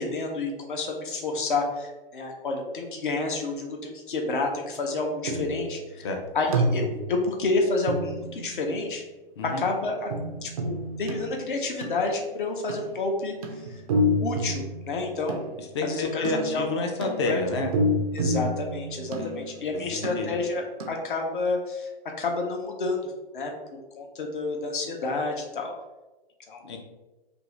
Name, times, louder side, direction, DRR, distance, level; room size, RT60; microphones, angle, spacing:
voice 1, 0.0-6.1 6.3-9.0 9.4-10.1 10.4-13.7 14.2-15.5 15.8-16.7 17.3-17.4 18.1-21.9 22.2-23.5 24.0-25.7 26.5-26.6, left 3 dB, 60° left, 2 dB, 0.7 m, -29 dB
sound 1, 5.3-5.7 6.5-7.2 7.9-8.9 10.1-12.2 12.7-13.0 13.4-15.6 16.2-19.7 20.0-20.5 20.8-20.9, equal, 40° right, 0.4 m, -29 dB
voice 2, 15.7-17.7 19.1-19.3 19.7-20.3 26.6-26.8, left 3 dB, 30° left, 3 dB, 0.4 m, -29 dB
2.6 x 2.4 x 3.1 m, 1.1 s
figure-of-eight pair, 120°, 29 cm